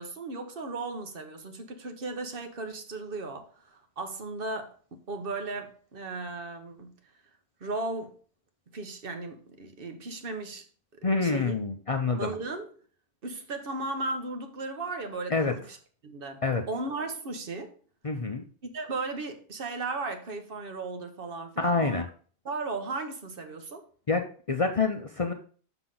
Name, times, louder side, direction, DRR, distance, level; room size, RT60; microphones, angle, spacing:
voice 1, 0.0-4.8 5.1-6.9 7.6-8.1 8.7-10.6 11.0-11.5 12.2-12.7 13.2-15.8 16.0-17.7 18.7-22.0 22.4-23.8, right 3 dB, 60° right, 6 dB, 1.1 m, -36 dB
voice 2, 11.0-12.3 15.3-15.5 16.4-16.6 18.0-18.4 21.6-22.1 24.1-25.3, left 4 dB, 40° left, 5 dB, 0.6 m, -27 dB
6.0 x 5.8 x 3.8 m, 0.42 s
omnidirectional pair, 1.1 m